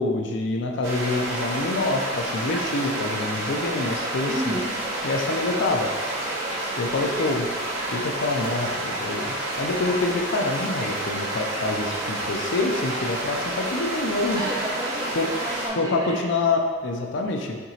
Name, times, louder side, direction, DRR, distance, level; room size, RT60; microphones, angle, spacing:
voice 1, 0.0-4.6 5.0-5.9 6.8-7.5 7.9-14.4 15.2-15.3 15.8-17.6, left 2 dB, 60° left, 2 dB, 0.4 m, -26 dB
sound 1, 0.8-15.7, right 1 dB, 80° right, 1.0 m, -29 dB
voice 2, 4.3-4.7 14.3-16.2, right 1 dB, 20° right, -4 dB, 0.7 m, -31 dB
5.8 x 2.9 x 2.8 m, 1.5 s
head